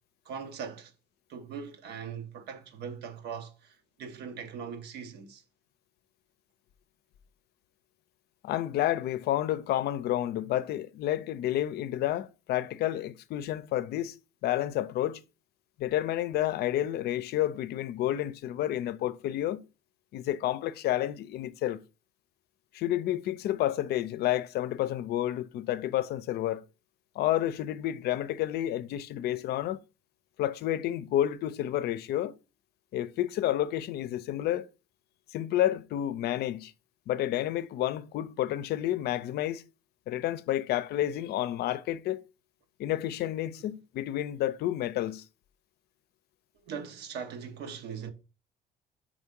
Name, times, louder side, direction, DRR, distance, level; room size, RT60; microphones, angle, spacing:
voice 1, 0.2-0.9 1.3-5.4 43.6-43.7 46.6-48.1, right 6 dB, 75° right, 1.2 m, -40 dB
voice 2, 8.4-14.1 14.4-15.2 15.8-19.6 20.1-21.8 22.7-26.6 27.2-29.8 30.4-32.3 32.9-34.7 35.3-36.7 37.1-39.6 40.1-42.2 42.8-45.2, left 13 dB, 70° left, 0.5 m, -30 dB
5.0 x 3.6 x 5.3 m
cardioid pair, 110°, 17 cm